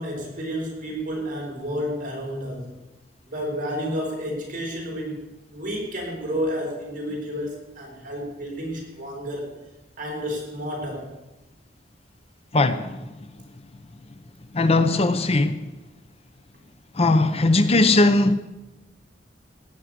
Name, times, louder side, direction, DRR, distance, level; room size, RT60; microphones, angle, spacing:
voice 1, 0.0-2.8 3.3-5.2 5.5-9.5 10.0-11.1, equal, 50° right, -1 dB, 5.4 m, -31 dB
voice 2, 12.5-13.2 14.5-15.6 16.9-18.4, left 2 dB, 35° left, 11 dB, 0.7 m, -19 dB
17.0 x 6.4 x 9.7 m, 1.0 s
head